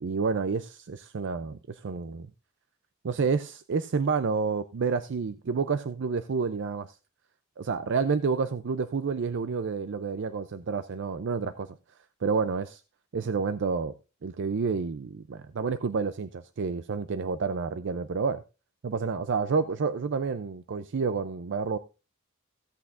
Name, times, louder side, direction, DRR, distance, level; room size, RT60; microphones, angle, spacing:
voice 1, 0.0-2.3 3.0-7.0 7.6-11.8 12.2-12.8 13.1-13.9 14.2-18.4 18.8-21.8, right 5 dB, 55° right, 0.5 m, -29 dB
15.5 x 8.4 x 2.5 m
head